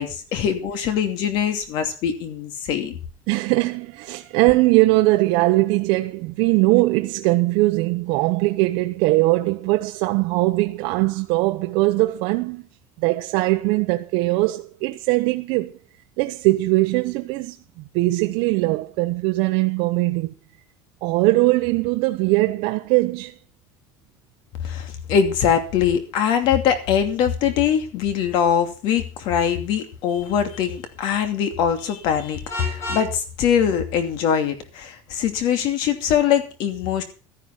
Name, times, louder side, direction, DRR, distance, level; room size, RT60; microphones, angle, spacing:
voice 1, 0.0-3.0 24.6-37.0, left 8 dB, 55° left, 2.7 m, -22 dB
voice 2, 3.3-12.7 13.0-15.7 16.2-20.3 21.0-23.3, right 20 dB, 65° right, 0.9 m, -20 dB
Vehicle horn car horn honking, 32.5-33.1, equal, 30° left, 6.6 m, -30 dB
13.0 x 10.5 x 6.0 m
cardioid pair, 175°, 10 cm